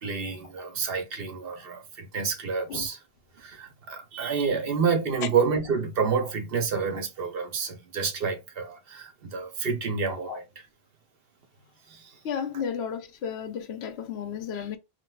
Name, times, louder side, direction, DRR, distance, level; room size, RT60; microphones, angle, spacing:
voice 1, 0.0-3.0 3.4-10.4 11.9-12.2, right 5 dB, 70° right, 0.9 m, -29 dB
voice 2, 10.1-10.4 12.2-14.8, left 7 dB, 85° left, 0.8 m, -33 dB
3.8 x 2.2 x 2.2 m
omnidirectional pair, 1.0 m